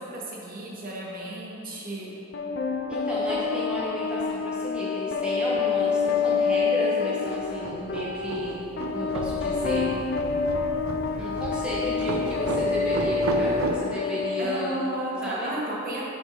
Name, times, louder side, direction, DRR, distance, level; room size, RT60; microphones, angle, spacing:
voice 1, 0.0-2.1 14.4-16.1, right 1 dB, 45° right, -4 dB, 1.0 m, -33 dB
sound 1, 2.3-15.4, left 5 dB, 55° left, 0.3 m, -27 dB
voice 2, 2.9-8.7 8.9-9.9 11.2-14.8 15.2-15.5, equal, 5° right, -8 dB, 0.8 m, -33 dB
sound 2, 7.2-13.8, right 3 dB, 75° right, 0.4 m, -33 dB
6.2 x 3.4 x 5.2 m, 2.7 s
head